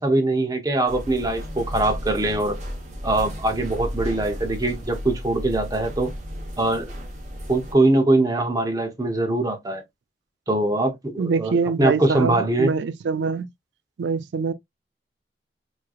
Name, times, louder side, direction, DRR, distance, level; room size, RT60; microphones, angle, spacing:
voice 1, 0.0-2.6 3.0-6.1 6.6-6.9 7.5-9.8 10.5-12.7, right 2 dB, 20° right, 0.8 m, -22 dB
sound 1, 0.9-7.7, equal, 45° right, 1.1 m, -34 dB
voice 2, 11.2-13.5 14.0-14.5, right 5 dB, 80° right, 0.4 m, -24 dB
3.7 x 3.1 x 2.3 m
head